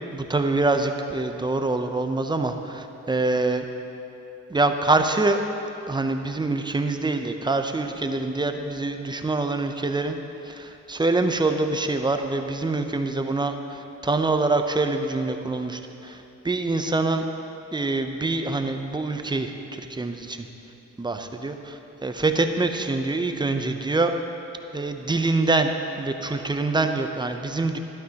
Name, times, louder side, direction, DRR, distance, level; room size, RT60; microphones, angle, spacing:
voice 1, 0.1-3.6 4.5-5.4 5.9-10.2 10.5-16.2 16.4-17.2 17.7-20.5 21.0-24.1 24.7-25.7 26.0-27.8, right 3 dB, 15° right, 6 dB, 0.6 m, -25 dB
12.5 x 11.5 x 2.9 m, 2.9 s
cardioid pair, 90°, 30 cm